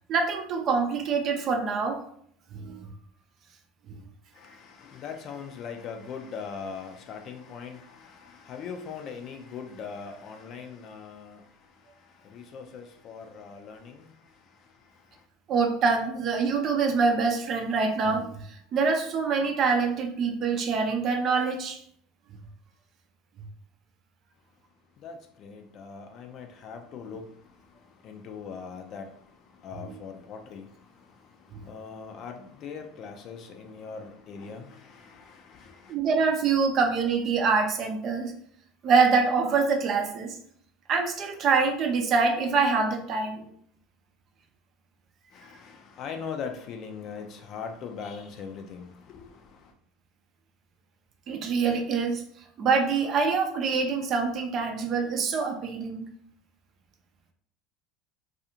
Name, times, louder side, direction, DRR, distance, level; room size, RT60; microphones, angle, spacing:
voice 1, 0.1-2.0 2.5-2.8 3.9-4.0 15.5-21.8 29.8-30.0 31.5-31.6 35.9-38.3 38.8-40.4 40.9-43.5 51.3-52.2 52.6-56.1, right 4 dB, 45° right, 0.5 m, -25 dB
voice 2, 4.4-11.4 12.3-14.1 25.0-27.2 28.0-29.1 29.6-30.7 31.7-35.9 45.3-49.2, left 6 dB, 50° left, 0.4 m, -40 dB
2.4 x 2.4 x 2.8 m
hypercardioid pair, 80°, 0 cm